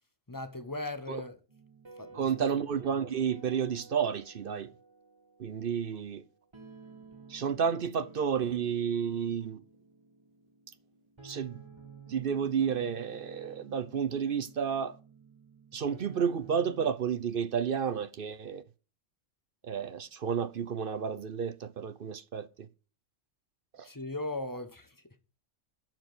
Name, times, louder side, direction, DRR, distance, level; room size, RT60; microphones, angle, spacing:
voice 1, 0.3-1.4 2.0-2.5 9.1-9.2 23.8-25.0, left 2 dB, 15° left, 1.0 m, -38 dB
sound 1, 1.5-16.9, right 5 dB, 20° right, 1.7 m, -53 dB
voice 2, 2.1-4.7 5.4-6.2 7.3-9.6 11.2-11.6 12.1-15.0 15.7-18.6 19.6-22.7 23.7-23.9, right 7 dB, 50° right, 0.8 m, -31 dB
12.0 x 4.7 x 7.8 m
omnidirectional pair, 1.3 m